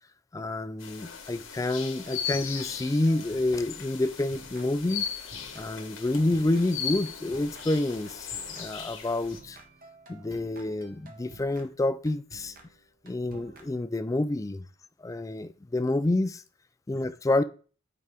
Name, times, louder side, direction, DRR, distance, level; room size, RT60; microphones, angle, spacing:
voice 1, 0.3-5.1 5.6-9.6 10.1-12.5 13.0-14.6 15.0-16.4 16.9-17.4, left 2 dB, 15° left, 0.3 m, -28 dB
sound 1, 0.8-9.4, left 7 dB, 80° left, 1.4 m, -38 dB
sound 2, 1.9-14.3, right 2 dB, 45° right, 1.0 m, -52 dB
8.8 x 4.8 x 3.5 m
head